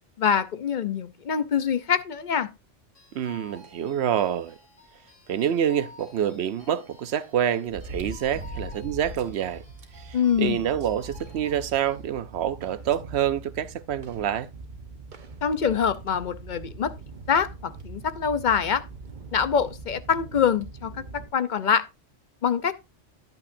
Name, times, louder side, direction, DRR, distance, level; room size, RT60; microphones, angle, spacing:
voice 1, 0.2-2.5 10.1-10.6 15.4-16.9 17.3-18.8 19.3-21.8 22.4-22.7, left 7 dB, 50° left, 0.7 m, -25 dB
sound 1, 2.9-12.0, left 3 dB, 90° left, 4.2 m, -52 dB
voice 2, 3.1-4.6 5.3-9.6 9.9-14.5, right 10 dB, 65° right, 0.8 m, -27 dB
sound 2, 5.7-5.8 7.7-9.4 9.8-9.9 10.3-10.4 10.8-11.9 12.9-13.0 14.5-14.6 15.1-15.2 15.9-16.2 17.5-17.6 17.8-17.9 19.6-19.9 20.6-20.7, right 2 dB, 90° right, 1.7 m, -39 dB
sound 3, 8.7-21.3, right 4 dB, 45° right, 1.0 m, -43 dB
10.5 x 8.6 x 2.6 m
omnidirectional pair, 1.2 m